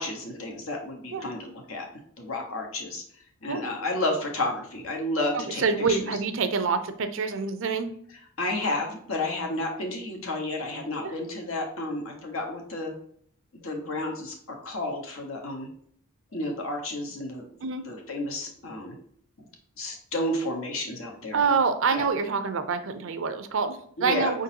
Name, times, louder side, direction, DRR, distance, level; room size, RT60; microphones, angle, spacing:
voice 1, 0.0-1.8 2.2-3.0 3.4-6.0 8.4-12.9 13.5-15.7 16.3-17.4 17.8-18.9 19.8-21.4 21.9-22.1 24.0-24.4, left 2 dB, 70° left, 2 dB, 1.1 m, -31 dB
voice 2, 5.3-7.9 11.0-11.1 17.6-17.9 21.3-24.4, right 5 dB, 60° right, 9 dB, 0.5 m, -26 dB
4.9 x 3.8 x 2.8 m, 0.62 s
head